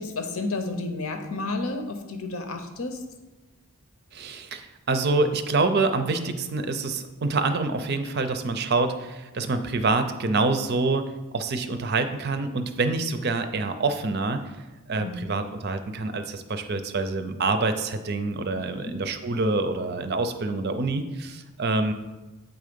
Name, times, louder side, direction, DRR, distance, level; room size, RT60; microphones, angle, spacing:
voice 1, 0.0-3.0 15.0-15.3 18.5-19.0, left 2 dB, 70° left, 6 dB, 0.8 m, -31 dB
voice 2, 4.1-14.4 14.9-21.9, right 3 dB, 45° right, 9 dB, 0.5 m, -26 dB
8.1 x 3.7 x 5.1 m, 1.1 s
head